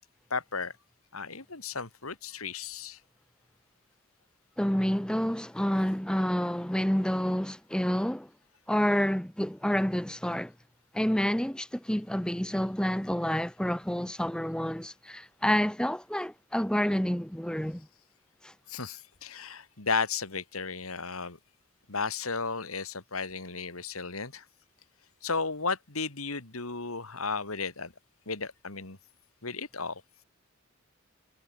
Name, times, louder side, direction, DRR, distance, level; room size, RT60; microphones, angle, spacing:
voice 1, 0.3-0.7 1.1-3.0 18.7-21.4 21.9-24.4 25.2-27.9 28.3-29.0 29.4-30.0, left 4 dB, 85° left, 3.1 m, -34 dB
voice 2, 4.6-8.3 8.7-10.5 10.9-17.9 18.4-18.5, equal, 5° left, 0.7 m, -28 dB
head